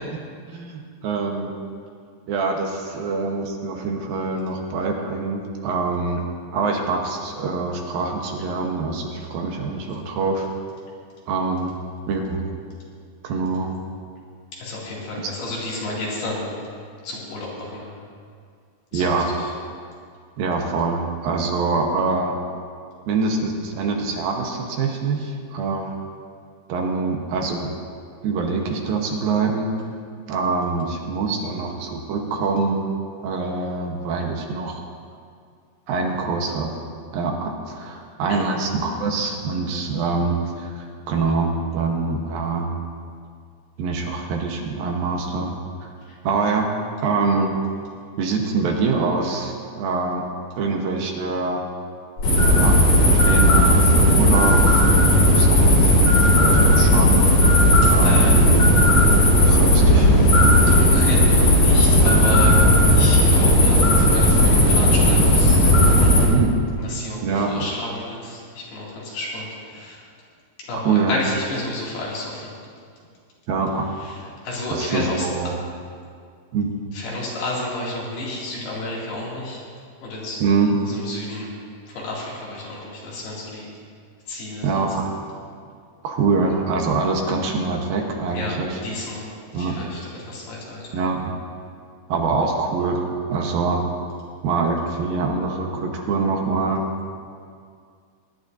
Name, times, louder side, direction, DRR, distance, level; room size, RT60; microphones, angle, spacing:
voice 1, 0.5-1.5 2.3-6.2 6.5-10.5 11.3-11.7 12.1-12.5 13.2-13.8 15.2-15.3 18.9-19.3 20.4-22.4 23.1-26.0 26.7-27.7 28.2-29.7 30.3-32.8 33.2-34.8 35.9-36.8 37.1-42.8 43.8-45.6 45.8-45.9 46.2-46.7 47.0-47.5 48.2-50.3 50.6-51.6 52.5-52.8 53.1-54.8 55.3-57.3 57.9-58.5 59.3-60.4 64.6-64.7 66.3-66.6 67.2-67.5 70.7-71.1 73.5-73.9 74.7-75.5 76.5-76.7 80.4-80.8 84.6-85.2 86.0-88.8 89.5-89.9 90.9-91.4 92.1-93.9 94.4-96.8, right 4 dB, 75° right, 1 dB, 2.7 m, -24 dB
voice 2, 14.6-16.5 17.0-17.9 18.9-19.5 38.3-38.4 46.1-46.2 58.0-58.6 60.7-62.6 62.9-66.3 66.8-70.0 70.7-72.5 74.0-75.5 76.9-79.6 80.0-80.4 80.9-81.5 81.9-83.7 84.3-84.8 88.3-88.6 88.8-89.3 89.5-90.8, left 2 dB, 80° left, -5 dB, 4.4 m, -31 dB
sound 1, 52.2-66.3, equal, 55° left, 3.7 m, -15 dB
20.5 x 11.5 x 2.6 m, 2.2 s
omnidirectional pair, 4.4 m